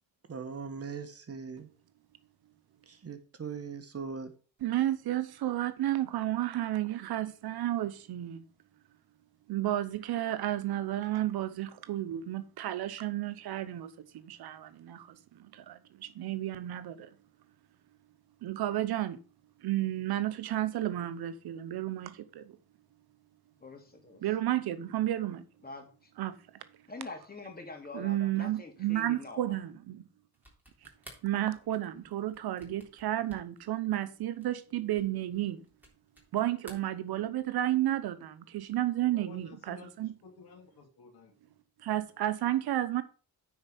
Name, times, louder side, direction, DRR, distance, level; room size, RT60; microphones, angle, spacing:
voice 1, 0.3-1.7 2.9-4.3, right 5 dB, 40° right, 1.4 m, -40 dB
voice 2, 4.6-8.4 9.5-17.1 18.4-19.2 19.6-22.5 24.2-25.4 26.2-26.4 27.9-30.0 31.2-35.6 36.3-40.1 41.8-43.0, right 13 dB, 85° right, 0.9 m, -32 dB
voice 3, 23.6-24.2 25.6-26.1 26.9-29.6, left 3 dB, 25° left, 2.7 m, -45 dB
sound 1, 30.3-36.3 36.6-37.6, equal, 5° right, 3.5 m, -55 dB
voice 4, 39.1-41.3, left 5 dB, 85° left, 2.7 m, -52 dB
9.7 x 4.6 x 5.6 m
cardioid pair, 90°, 37 cm